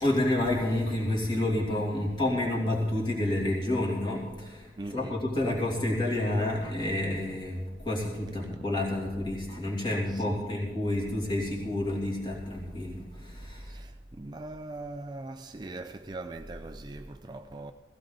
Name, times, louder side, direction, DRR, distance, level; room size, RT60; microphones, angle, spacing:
voice 1, 0.0-13.8, left 1 dB, 25° left, 2.8 m, -29 dB
voice 2, 4.8-5.2 10.1-10.5 13.6-17.7, right 2 dB, 25° right, 0.4 m, -41 dB
16.0 x 16.0 x 4.0 m
head